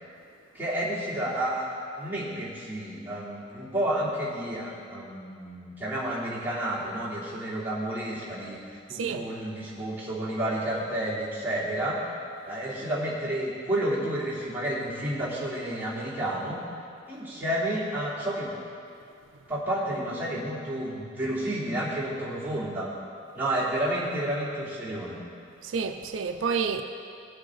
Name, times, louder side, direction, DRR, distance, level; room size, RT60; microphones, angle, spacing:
voice 1, 0.5-1.6 2.0-8.6 8.9-12.0 12.4-16.6 17.1-18.5 19.5-22.9 23.3-25.2, right 1 dB, 10° right, -10 dB, 3.2 m, -30 dB
voice 2, 8.9-9.2 25.6-26.8, right 5 dB, 80° right, 7 dB, 0.5 m, -29 dB
19.0 x 8.2 x 3.9 m, 2.4 s
head